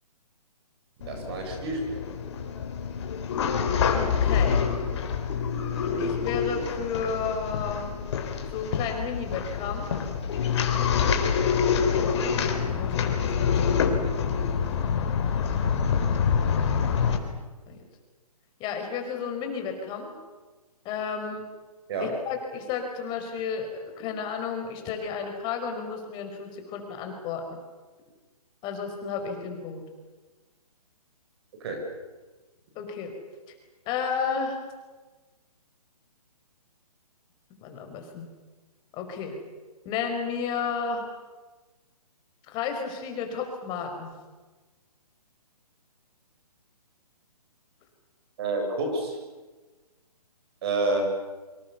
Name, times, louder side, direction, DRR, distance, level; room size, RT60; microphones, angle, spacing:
sound 1, 1.0-17.2, left 6 dB, 45° left, 3.9 m, -26 dB
voice 1, 1.0-2.1 13.4-13.5 21.9-22.1 31.6-31.8 48.4-49.2 50.6-51.1, right 2 dB, 40° right, 3 dB, 7.1 m, -29 dB
voice 2, 3.8-4.6 6.0-7.9 8.5-9.9 12.2-14.1 17.7-17.8 18.6-20.1 20.9-21.4 22.0-23.7 24.0-27.6 28.6-29.8 32.8-33.1 33.9-34.6 37.6-38.3 38.9-39.4 39.9-41.0 42.5-44.1, left 6 dB, 20° left, 4 dB, 5.3 m, -32 dB
28.0 x 25.5 x 7.0 m, 1.3 s
figure-of-eight pair, 140°, 20 cm